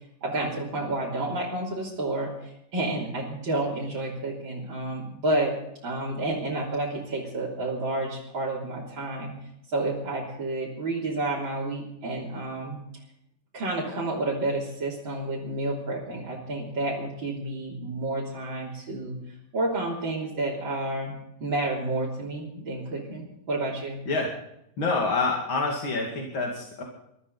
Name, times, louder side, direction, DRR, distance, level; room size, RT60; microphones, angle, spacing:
voice 1, 0.2-5.5 5.8-9.3 9.7-12.8 13.5-24.0, right 2 dB, 85° right, -7 dB, 4.1 m, -30 dB
voice 2, 24.8-26.8, left 3 dB, 90° left, -1 dB, 3.3 m, -27 dB
23.0 x 13.5 x 4.1 m, 0.79 s
omnidirectional pair, 2.1 m